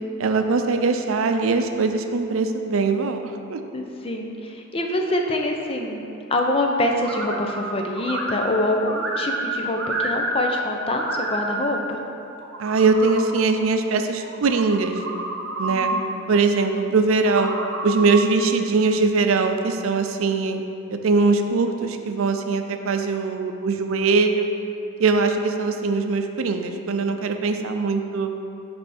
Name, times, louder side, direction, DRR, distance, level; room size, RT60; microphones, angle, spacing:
voice 1, 0.2-3.6 12.6-15.0 15.6-15.9 16.3-17.5 17.8-20.6 20.9-24.5 25.0-28.3, right 4 dB, 85° right, 6 dB, 0.5 m, -21 dB
voice 2, 3.7-12.0 15.7-16.2, left 1 dB, 30° left, 2 dB, 0.5 m, -25 dB
sound 1, 7.0-7.7 8.0-10.6 10.9-11.7 12.3-13.3 14.2-16.0 17.1-18.3, right 2 dB, 60° right, 0.8 m, -29 dB
9.8 x 3.4 x 4.2 m, 2.7 s
head